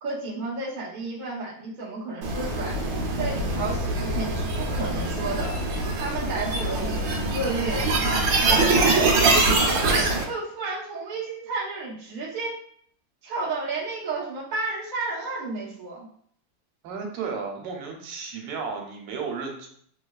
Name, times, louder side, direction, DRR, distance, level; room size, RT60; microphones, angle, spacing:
voice 1, 0.0-2.8 3.2-5.6 6.0-7.9 8.7-9.1 9.6-12.5 13.2-16.1, right 3 dB, 45° right, -6 dB, 0.5 m, -32 dB
sound 1, 2.2-10.2, right 2 dB, 70° right, 1.2 m, -23 dB
voice 2, 8.5-8.9 16.8-19.7, right 5 dB, 85° right, 2 dB, 1.6 m, -33 dB
3.2 x 3.1 x 2.3 m, 0.62 s
omnidirectional pair, 2.4 m